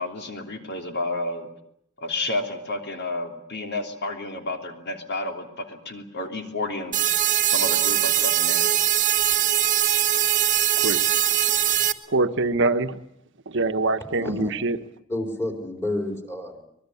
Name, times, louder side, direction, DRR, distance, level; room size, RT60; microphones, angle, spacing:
voice 1, 0.0-1.5 2.0-7.0 7.5-8.7, left 2 dB, 50° left, 3.3 m, -31 dB
sound 1, 6.9-11.9, right 11 dB, 35° right, 1.2 m, -21 dB
voice 2, 12.1-13.0 13.5-14.8, right 3 dB, 55° right, 1.3 m, -23 dB
voice 3, 14.1-14.5 15.1-16.7, left 1 dB, 10° left, 4.4 m, -30 dB
24.0 x 20.5 x 8.5 m
head